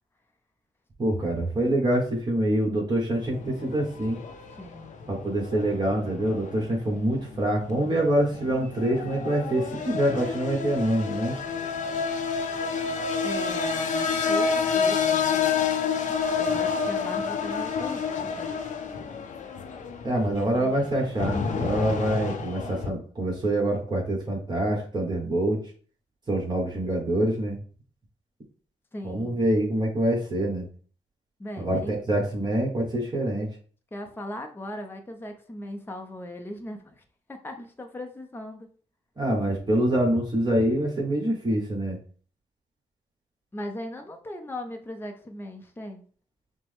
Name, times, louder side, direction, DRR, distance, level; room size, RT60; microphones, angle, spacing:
voice 1, 1.0-4.2 5.1-11.4 20.0-25.6 26.3-27.6 29.0-30.7 31.6-33.5 39.2-42.0, right 1 dB, 30° right, -2 dB, 1.5 m, -25 dB
sound 1, 3.1-22.9, left 5 dB, 65° left, 0.7 m, -29 dB
voice 2, 4.6-4.9 13.2-15.7 16.4-18.5 28.9-29.4 31.4-32.0 33.9-37.0 37.3-38.7 43.5-46.0, left 1 dB, 15° left, 4 dB, 0.7 m, -38 dB
5.8 x 2.2 x 3.5 m, 0.43 s
cardioid pair, 75°, 14 cm